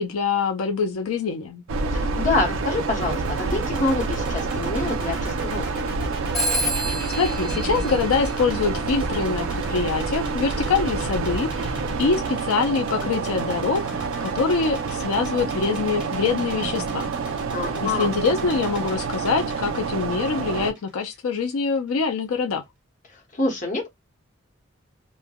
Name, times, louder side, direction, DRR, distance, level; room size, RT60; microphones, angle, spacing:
voice 1, 0.0-1.6 7.2-17.1 17.8-22.6, left 4 dB, 85° left, 0.5 m, -24 dB
sound 1, 1.7-20.7, right 4 dB, 70° right, 0.4 m, -28 dB
voice 2, 1.9-5.9 17.5-18.1 23.3-23.9, left 2 dB, 35° left, 0.9 m, -26 dB
sound 2, 3.0-21.1, right 2 dB, 20° right, 1.1 m, -39 dB
Telephone, 6.3-8.8, right 1 dB, ahead, 0.6 m, -29 dB
3.1 x 2.1 x 2.2 m
head